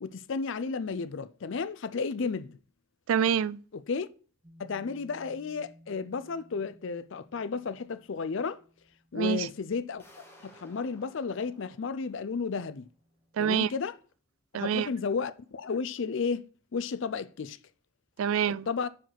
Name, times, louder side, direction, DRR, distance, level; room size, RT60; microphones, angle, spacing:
voice 1, 0.0-2.6 3.7-4.1 4.6-8.6 9.1-10.0 10.4-12.9 13.4-13.9 14.5-17.6 18.7-18.9, left 5 dB, 60° left, 0.4 m, -33 dB
voice 2, 3.1-3.6 9.1-9.5 13.3-13.7 14.5-14.9 18.2-18.7, right 8 dB, 70° right, 0.3 m, -26 dB
sound 1, 4.4-13.9, equal, 15° right, 1.8 m, -60 dB
sound 2, 10.0-12.8, equal, 10° left, 1.6 m, -57 dB
6.0 x 4.8 x 6.2 m
head